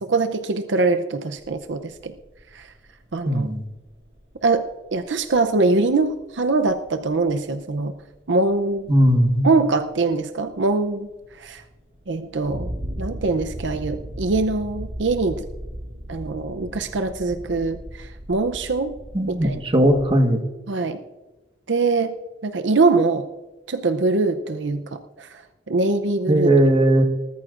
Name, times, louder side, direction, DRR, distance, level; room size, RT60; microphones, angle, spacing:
voice 1, 0.0-2.1 2.5-2.7 3.1-3.5 4.4-4.6 4.9-7.9 8.3-8.9 9.4-11.1 11.4-11.6 12.1-12.7 13.0-15.4 16.1-19.0 19.3-19.6 20.7-21.0 21.7-22.1 22.4-23.3 23.7-25.4 25.7-26.5, right 3 dB, 70° right, 8 dB, 0.7 m, -23 dB
sound 1, 1.4-20.3, equal, 50° right, 2.4 m, -37 dB
voice 2, 3.2-3.6 8.9-9.5 19.1-20.4 26.3-27.0, right 1 dB, 30° right, 5 dB, 1.4 m, -18 dB
20.0 x 13.5 x 2.5 m, 1.1 s
head